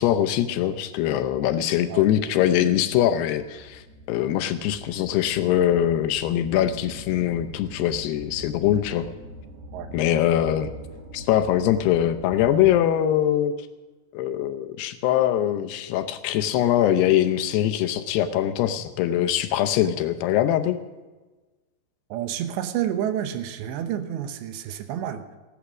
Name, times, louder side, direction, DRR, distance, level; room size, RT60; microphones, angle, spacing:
voice 1, 0.0-9.1 9.9-10.7 11.1-13.5 14.1-20.8, left 11 dB, 80° left, 9 dB, 2.6 m, -22 dB
sound 1, 3.0-13.0, equal, 45° right, 2.9 m, -43 dB
voice 2, 22.1-25.4, right 10 dB, 80° right, 9 dB, 3.1 m, -29 dB
16.5 x 11.5 x 6.1 m, 1.2 s
omnidirectional pair, 5.1 m